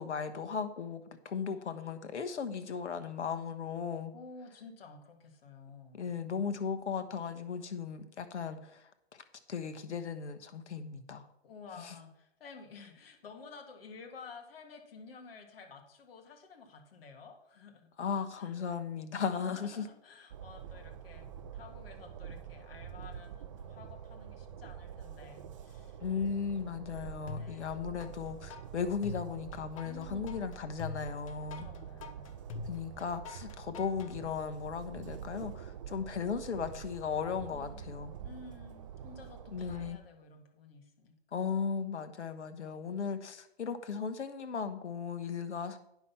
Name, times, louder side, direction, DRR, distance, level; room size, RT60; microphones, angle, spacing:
voice 1, 0.0-4.1 5.9-11.3 11.8-11.9 18.0-19.9 26.0-31.7 32.6-38.1 39.5-40.0 41.3-45.8, left 6 dB, 85° left, 9 dB, 1.3 m, -36 dB
voice 2, 4.1-6.1 8.0-8.1 11.4-17.9 18.1-18.6 19.3-26.0 26.5-26.8 27.3-27.8 29.8-30.5 31.6-32.3 37.5-41.5 42.6-42.9, left 4 dB, 55° left, 4 dB, 1.9 m, -52 dB
Train, 20.3-39.9, right 8 dB, 30° right, 0.5 m, -47 dB
sound 1, 27.3-28.1 28.5-34.1, left 4 dB, 30° left, 0.6 m, -44 dB
9.5 x 5.9 x 5.6 m, 0.79 s
hypercardioid pair, 155°, 34 cm